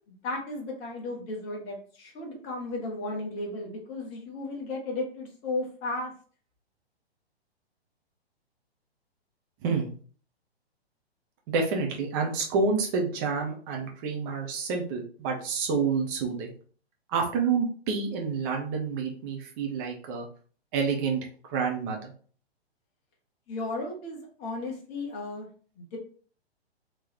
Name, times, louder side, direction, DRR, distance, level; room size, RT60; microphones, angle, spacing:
voice 1, 0.2-6.1 23.5-25.5 25.8-26.0, left 2 dB, 20° left, 0 dB, 0.8 m, -34 dB
voice 2, 11.5-16.5 17.1-20.3 20.7-21.2 21.5-22.1, right 5 dB, 20° right, 1 dB, 0.7 m, -28 dB
3.7 x 3.0 x 2.9 m, 0.44 s
figure-of-eight pair, 120°, 32 cm